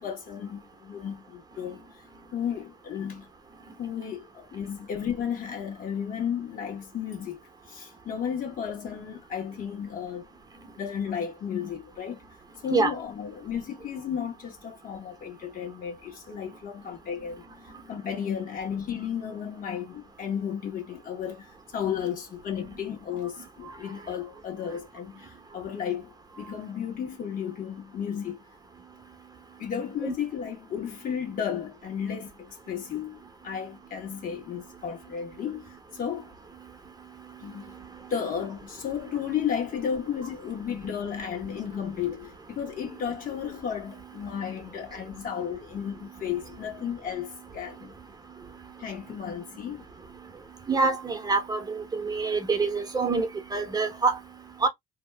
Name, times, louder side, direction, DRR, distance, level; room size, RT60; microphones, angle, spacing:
voice 1, 0.0-1.8 2.3-3.3 3.8-7.4 7.7-10.3 10.8-12.2 12.6-17.4 17.9-28.4 29.6-33.2 33.4-36.3 37.4-37.7 38.1-47.9 48.8-49.8, left 8 dB, 55° left, 1.5 m, -33 dB
voice 2, 50.7-54.2 54.6-54.7, right 4 dB, 25° right, 0.8 m, -26 dB
2.8 x 2.2 x 3.3 m
cardioid pair, 110°, 17 cm